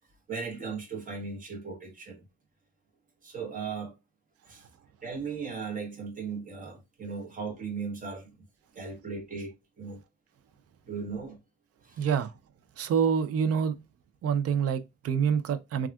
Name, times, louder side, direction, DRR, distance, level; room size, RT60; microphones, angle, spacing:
voice 1, 0.3-2.2 3.2-4.0 4.5-4.6 5.0-8.3 8.7-10.0 10.9-11.4 11.8-12.1, right 5 dB, 25° right, 1.0 m, -37 dB
voice 2, 12.0-12.3 12.8-13.8 14.2-15.9, right 7 dB, 50° right, 0.5 m, -26 dB
3.4 x 2.4 x 2.3 m
cardioid pair, 90°, 30 cm